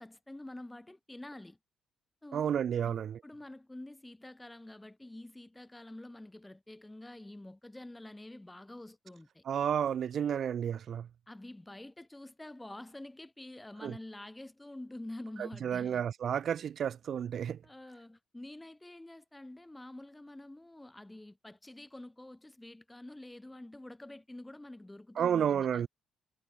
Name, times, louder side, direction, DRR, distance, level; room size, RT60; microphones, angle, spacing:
voice 1, 0.0-1.6 2.2-2.5 2.8-3.0 3.2-9.4 11.3-16.0 17.6-25.9, left 1 dB, 10° left, 2.0 m, -48 dB
voice 2, 2.3-3.2 9.5-11.1 13.8-14.0 15.6-17.6 25.2-25.9, right 8 dB, 60° right, 0.6 m, -31 dB
cardioid pair, 90°, 0 cm